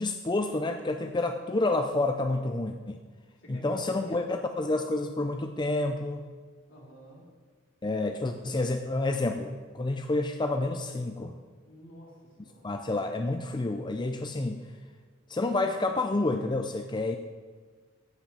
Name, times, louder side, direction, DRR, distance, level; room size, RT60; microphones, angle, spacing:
voice 1, 0.0-3.0 3.5-6.2 7.8-11.4 12.6-14.6 15.3-17.2, left 2 dB, 20° left, 6 dB, 0.5 m, -29 dB
voice 2, 3.4-4.2 6.7-7.3 8.1-8.2 11.7-12.7, equal, 70° left, -2 dB, 3.1 m, -49 dB
15.5 x 5.9 x 6.6 m, 1.5 s
head